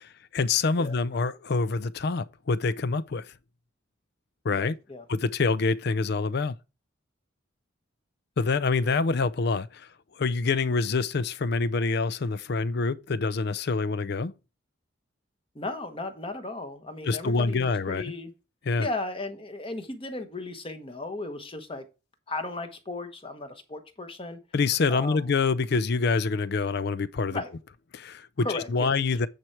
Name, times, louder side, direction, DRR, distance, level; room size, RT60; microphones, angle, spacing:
voice 1, 0.3-3.3 4.4-4.7 5.1-6.6 8.4-9.9 10.2-14.3 17.0-18.0 18.6-18.9 24.5-27.4 27.9-29.3, left 4 dB, 55° left, 0.5 m, -26 dB
voice 2, 4.6-5.0 8.8-9.0 15.5-18.3 18.8-21.8 22.3-24.4 24.9-25.3 27.3-27.5 28.4-29.2, left 2 dB, 25° left, 1.2 m, -36 dB
9.3 x 4.5 x 4.7 m
head